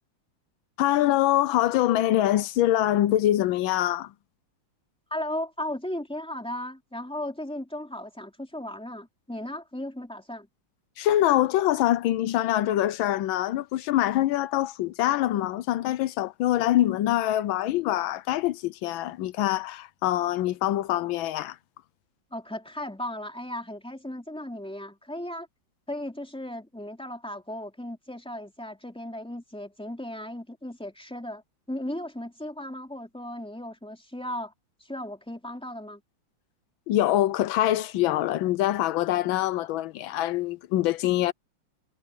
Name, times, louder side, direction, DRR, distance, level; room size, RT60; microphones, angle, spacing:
voice 1, 0.8-4.1 11.0-21.6 36.9-41.3, left 13 dB, 85° left, 1.4 m, -24 dB
voice 2, 5.1-10.5 22.3-25.5 25.9-31.4 31.7-34.5 34.8-36.0, left 1 dB, 5° left, 3.1 m, -36 dB
omnidirectional pair, 2.1 m